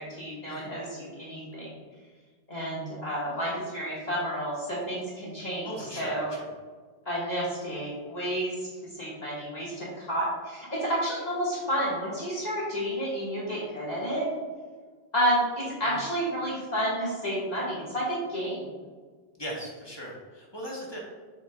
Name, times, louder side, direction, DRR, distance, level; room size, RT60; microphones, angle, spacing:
voice 1, 0.0-1.7 2.5-6.3 7.1-8.7 9.0-14.3 15.1-18.7, equal, 40° left, -7 dB, 2.0 m, -30 dB
voice 2, 5.6-6.5 15.8-16.0 19.4-21.0, equal, 25° left, -4 dB, 1.5 m, -39 dB
7.3 x 6.2 x 2.5 m, 1.5 s
omnidirectional pair, 1.1 m